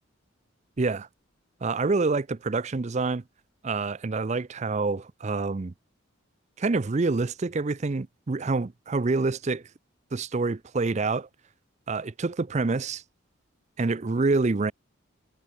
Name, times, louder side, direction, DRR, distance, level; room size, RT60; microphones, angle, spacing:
voice 1, 0.8-1.1 1.6-3.2 3.6-5.7 6.6-9.6 10.1-11.3 11.9-13.0 13.8-14.7, right 3 dB, 35° right, 0.5 m, -27 dB
head